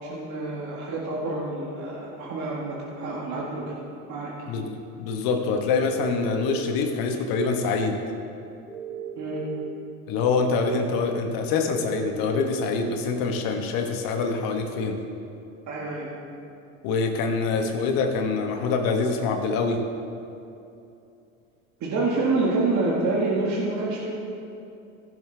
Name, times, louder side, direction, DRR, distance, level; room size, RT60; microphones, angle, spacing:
voice 1, 0.0-3.8 4.1-4.3 9.2-9.4 15.7-16.1 21.8-24.1, right 3 dB, 50° right, -4 dB, 1.9 m, -27 dB
voice 2, 4.5-8.0 10.1-15.0 16.8-19.8, left 4 dB, 65° left, 3 dB, 1.4 m, -25 dB
sound 1, 5.7-6.9 8.7-9.7 11.7-12.7, right 9 dB, 5° right, 2.5 m, -36 dB
15.0 x 6.9 x 3.5 m, 2.7 s
supercardioid pair, 100°, 37 cm